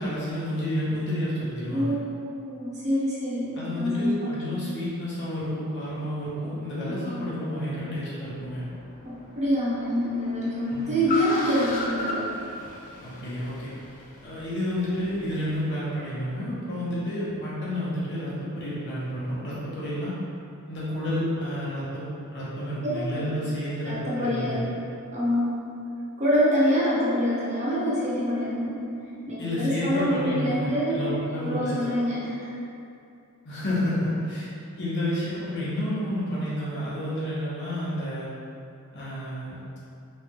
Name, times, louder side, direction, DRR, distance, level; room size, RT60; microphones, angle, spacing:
voice 1, 0.0-1.9 3.5-8.6 10.7-11.0 13.0-13.7 14.2-20.1 20.7-22.1 22.3-24.6 29.4-31.8 33.4-34.5 34.8-38.3 38.9-39.6, equal, 55° left, -9 dB, 0.9 m, -30 dB
voice 2, 1.7-4.3 6.9-7.3 9.0-12.3 22.8-23.3 23.8-24.6 25.1-25.6 26.2-28.9 29.3-31.0 31.4-32.5, equal, 35° right, -8 dB, 0.8 m, -26 dB
Car, 8.3-15.7, left 2 dB, 40° left, 0.4 m, -37 dB
3.2 x 2.3 x 2.9 m, 2.6 s
head